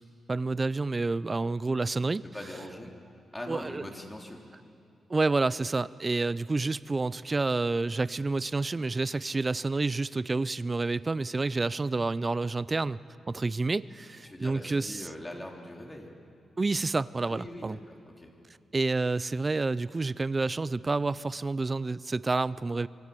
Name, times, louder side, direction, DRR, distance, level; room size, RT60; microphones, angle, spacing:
voice 1, 0.3-2.2 3.5-3.8 5.1-13.0 13.3-15.1 16.6-17.8 18.7-22.9, right 3 dB, 30° right, 18 dB, 0.5 m, -29 dB
voice 2, 2.3-2.9 3.3-4.4 14.2-16.1 17.3-18.3, left 1 dB, 15° left, 0 dB, 3.4 m, -42 dB
27.0 x 24.0 x 6.9 m, 2.5 s
cardioid pair, 95°, 0 cm